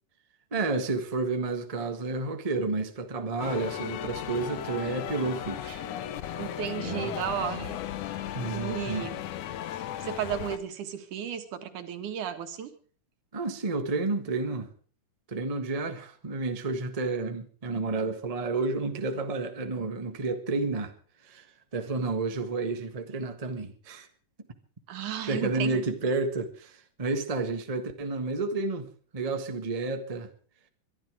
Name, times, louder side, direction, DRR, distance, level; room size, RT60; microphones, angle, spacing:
voice 1, 0.5-5.8 6.8-7.1 8.3-9.1 13.3-14.7 15.3-20.9 21.2-21.5 21.7-24.1 25.3-30.3, right 3 dB, 35° right, 0.5 m, -31 dB
sound 1, 3.4-10.6, left 11 dB, 75° left, 2.4 m, -36 dB
voice 2, 6.4-7.8 8.5-9.2 9.8-12.7 24.9-25.8, right 9 dB, 75° right, 3.0 m, -34 dB
22.5 x 11.5 x 4.9 m
omnidirectional pair, 3.6 m